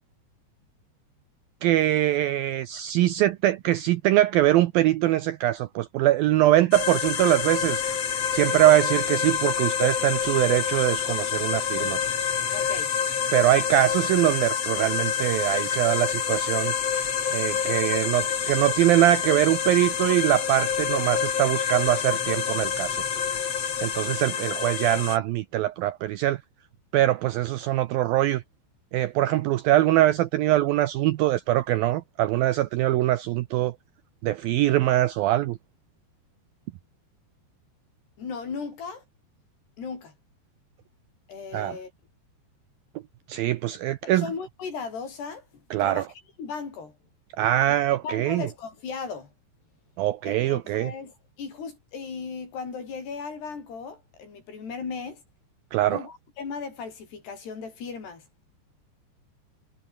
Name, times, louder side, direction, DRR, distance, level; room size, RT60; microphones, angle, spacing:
voice 1, 1.6-7.8 8.3-12.0 13.3-16.7 17.3-23.0 23.8-26.4 26.9-28.4 28.9-33.7 34.2-35.6 41.5-41.8 43.3-44.3 45.7-46.0 47.4-48.5 50.0-50.9 55.7-56.0, right 14 dB, 80° right, 2.1 m, -23 dB
sound 1, 6.7-25.2, left 8 dB, 45° left, 2.6 m, -27 dB
voice 2, 12.5-12.9 38.2-39.0 39.8-40.1 41.3-41.9 44.0-46.1 46.4-46.9 47.7-47.8 48.0-49.3 50.3-55.2 55.9-58.3, left 5 dB, 65° left, 8.0 m, -36 dB
omnidirectional pair, 5.0 m